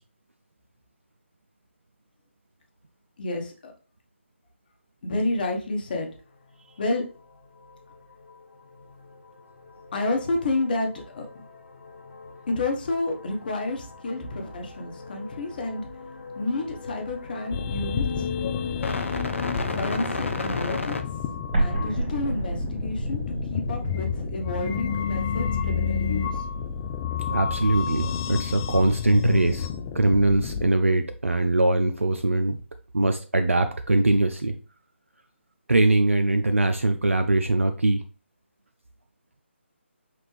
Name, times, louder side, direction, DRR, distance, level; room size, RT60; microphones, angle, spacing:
voice 1, 3.2-3.7 5.0-6.1 6.8-7.0 9.9-11.3 12.6-15.8 16.4-18.0 19.6-20.9 21.6-23.2 23.5-26.4, left 2 dB, 45° left, 3 dB, 1.2 m, -30 dB
sound 1, 7.0-7.3 7.6-21.0, left 3 dB, 75° left, 0.7 m, -36 dB
sound 2, 17.5-30.7, left 7 dB, 20° left, 0.3 m, -30 dB
Explosion, 21.5-26.3, right 2 dB, 35° right, 2.1 m, -31 dB
voice 2, 27.3-29.7 29.9-32.6 32.9-34.5 35.7-38.0, right 2 dB, 90° right, 7 dB, 0.4 m, -22 dB
5.9 x 2.5 x 3.2 m, 0.35 s
figure-of-eight pair, 150°, 7 cm